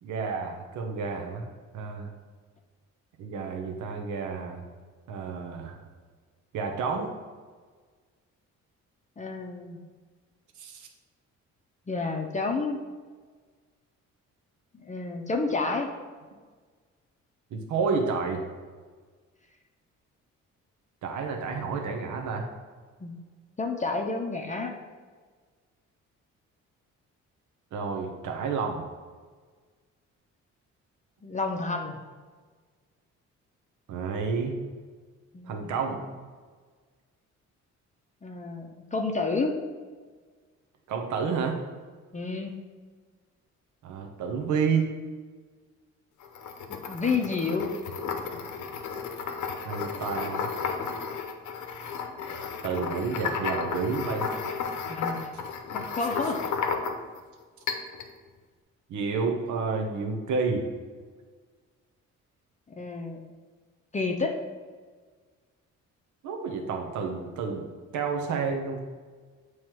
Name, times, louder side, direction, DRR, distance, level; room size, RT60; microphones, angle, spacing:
voice 1, 0.0-1.5 1.7-2.1 3.2-4.6 5.1-5.8 6.5-7.1 10.6-10.9 17.5-18.4 21.0-22.5 27.7-28.8 33.9-34.6 35.4-36.0 40.9-41.6 43.8-44.9 49.6-50.5 52.6-54.3 58.9-60.7 66.2-67.7 67.9-68.8, right 5 dB, 75° right, 2 dB, 0.8 m, -30 dB
voice 2, 9.2-9.8 11.9-12.8 14.7-15.9 23.0-23.2 23.6-24.8 31.2-32.0 35.3-35.7 38.2-39.6 42.1-42.6 46.7-47.8 54.9-55.3 55.7-56.4 62.8-63.2 63.9-64.4, left 3 dB, 25° left, 3 dB, 0.7 m, -30 dB
sound 1, 46.2-57.2 57.7-58.1, left 5 dB, 80° left, 0.7 m, -33 dB
7.3 x 3.2 x 4.5 m, 1.5 s
cardioid pair, 90°, 30 cm